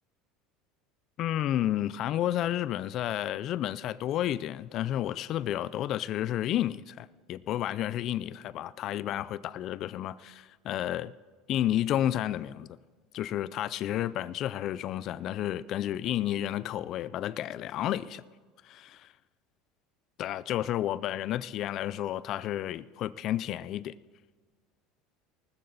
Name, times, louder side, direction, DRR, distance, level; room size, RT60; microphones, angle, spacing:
voice 1, 1.2-11.1 11.5-12.8 13.1-18.2 18.6-19.1 20.2-23.9, left 12 dB, 45° left, 0.4 m, -31 dB
19.0 x 13.5 x 4.1 m
cardioid pair, 150°, 0 cm